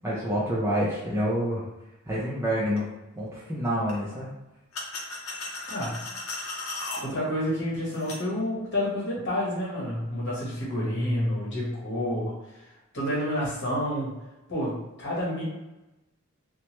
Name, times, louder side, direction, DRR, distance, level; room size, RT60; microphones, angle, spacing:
voice 1, 0.0-1.6 2.1-2.8 3.2-4.3, equal, 10° right, -8 dB, 0.4 m, -27 dB
sound 1, 2.7-2.8 3.9-4.0 4.7-7.0 7.9-8.2, left 2 dB, 85° left, 0.6 m, -36 dB
voice 2, 5.7-6.1 7.0-12.3 12.9-14.1 14.5-15.4, equal, 55° left, -5 dB, 1.0 m, -29 dB
3.0 x 2.1 x 2.9 m, 1.0 s
head